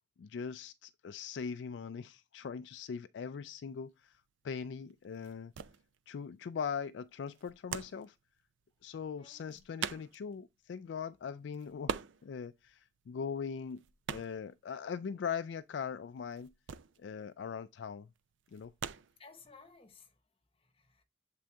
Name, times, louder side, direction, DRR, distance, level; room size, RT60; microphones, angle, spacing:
voice 1, 0.2-4.2 4.4-5.5 6.1-8.2 8.8-13.8 14.1-16.5 17.0-18.1 18.5-18.7, left 6 dB, 70° left, 0.3 m, -41 dB
sound 1, 3.7-20.0, right 7 dB, 90° right, 0.4 m, -45 dB
voice 2, 9.2-9.6 19.2-20.2 20.6-21.0, left 4 dB, 30° left, 1.0 m, -58 dB
7.5 x 3.8 x 3.4 m
head